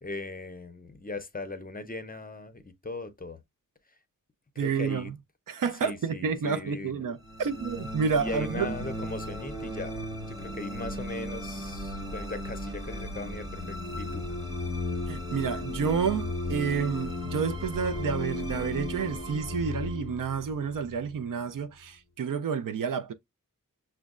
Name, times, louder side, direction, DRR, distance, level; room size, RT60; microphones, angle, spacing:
voice 1, 0.0-3.4 4.6-5.1 5.8-7.0 8.2-14.3, left 2 dB, 25° left, 0.5 m, -39 dB
voice 2, 4.6-5.2 5.5-8.7 15.1-23.1, right 6 dB, 70° right, 0.5 m, -30 dB
sound 1, 7.2-21.6, left 1 dB, 10° right, 1.0 m, -35 dB
6.1 x 2.1 x 2.4 m
wide cardioid pair, 100°, 34 cm